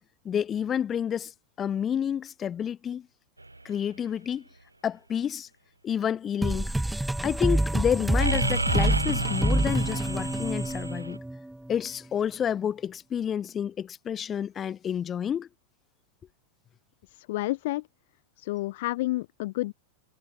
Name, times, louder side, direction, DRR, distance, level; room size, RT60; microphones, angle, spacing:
voice 1, 0.2-1.3 1.6-3.1 3.6-4.4 4.8-5.5 5.8-6.7 7.2-11.2 11.7-15.5, left 8 dB, 25° left, 7.8 m, -29 dB
sound 1, 3.4-3.6 8.2-11.2, right 2 dB, 85° right, 5.0 m, -30 dB
sound 2, 6.4-11.7, right 1 dB, 5° right, 3.1 m, -27 dB
voice 2, 17.3-17.8 18.4-19.7, left 18 dB, 50° left, 0.8 m, -29 dB
figure-of-eight pair, 90°, 0 cm